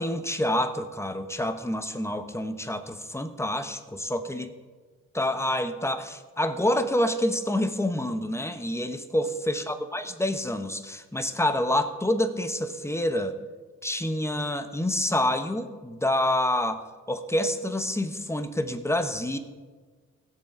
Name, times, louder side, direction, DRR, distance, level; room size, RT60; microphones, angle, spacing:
voice 1, 0.0-4.5 5.1-13.4 13.8-19.4, left 1 dB, 10° left, 9 dB, 1.1 m, -27 dB
17.0 x 7.3 x 3.8 m, 1.4 s
supercardioid pair, 45°, 32 cm